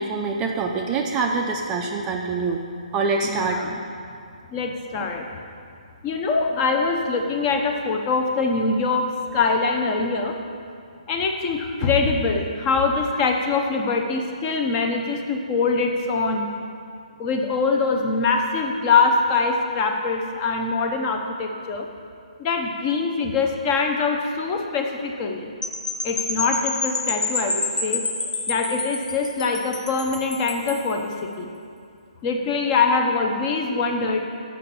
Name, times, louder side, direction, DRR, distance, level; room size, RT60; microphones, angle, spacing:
voice 1, 0.0-2.6 2.9-3.7, right 4 dB, 15° right, 2 dB, 0.4 m, -25 dB
voice 2, 3.2-3.8 4.5-5.3 6.0-10.4 11.1-16.5 17.2-21.9 22.4-25.5 26.0-28.0 28.5-31.5 32.2-34.3, left 4 dB, 25° left, 3 dB, 0.6 m, -23 dB
sound 1, 25.6-30.9, left 3 dB, 85° left, 0.9 m, -28 dB
6.9 x 5.7 x 6.8 m, 2.3 s
hypercardioid pair, 155°, 4 cm